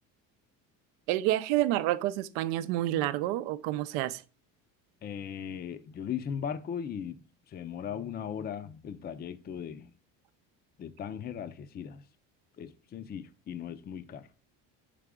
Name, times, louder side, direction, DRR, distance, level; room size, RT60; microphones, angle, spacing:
voice 1, 1.1-4.2, right 14 dB, 85° right, 0.6 m, -29 dB
voice 2, 5.0-9.9 10.8-12.1 12.6-14.3, left 8 dB, 25° left, 0.5 m, -38 dB
5.6 x 5.0 x 3.5 m
supercardioid pair, 105°, 37 cm